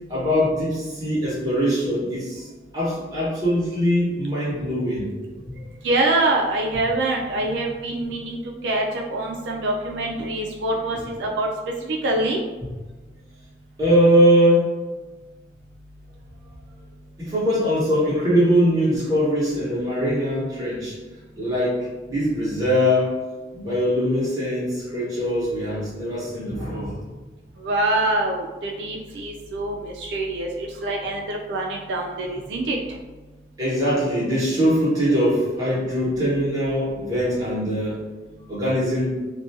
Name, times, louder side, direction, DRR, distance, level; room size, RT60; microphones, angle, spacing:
voice 1, 0.1-2.4 2.7-5.1 13.8-14.7 17.2-20.9 21.4-23.2 23.5-26.9 33.6-38.0 38.5-39.1, equal, 20° right, -9 dB, 1.0 m, -21 dB
voice 2, 5.8-8.4 8.6-11.5 11.9-12.4 27.6-32.8, right 2 dB, 80° right, 0 dB, 0.3 m, -25 dB
2.5 x 2.2 x 2.7 m, 1.2 s
head